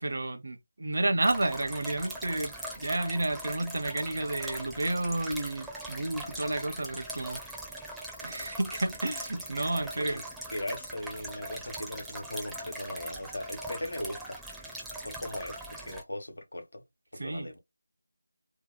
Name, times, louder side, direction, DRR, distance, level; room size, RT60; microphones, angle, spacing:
voice 1, 0.0-7.4 8.2-10.2 17.2-17.5, right 2 dB, 55° right, 0.6 m, -31 dB
sound 1, 1.2-16.0, right 1 dB, ahead, 0.4 m, -41 dB
voice 2, 10.5-14.4 15.0-16.8 17.1-17.6, left 1 dB, 70° left, 1.0 m, -38 dB
2.7 x 2.2 x 2.3 m
figure-of-eight pair, 165°, 0 cm